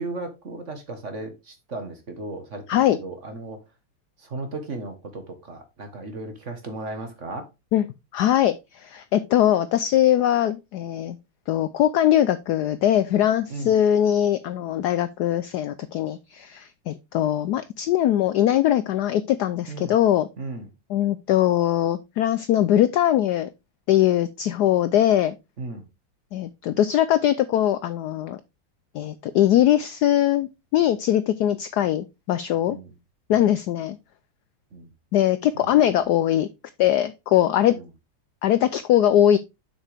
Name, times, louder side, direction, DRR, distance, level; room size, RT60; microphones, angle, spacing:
voice 1, 0.0-3.6 4.2-7.5 13.5-13.7 19.7-19.9 20.4-20.7 25.6-25.8 32.7-32.9 33.3-33.4 34.7-34.9 35.5-35.8 37.7-37.9, right 2 dB, 40° right, 1.6 m, -35 dB
voice 2, 8.1-11.2 11.5-20.3 20.9-23.5 23.9-25.4 26.3-28.4 28.9-32.8 33.3-34.0 35.1-36.5 36.8-37.8 38.4-39.4, left 11 dB, 80° left, 0.9 m, -21 dB
7.5 x 6.3 x 3.4 m
omnidirectional pair, 2.3 m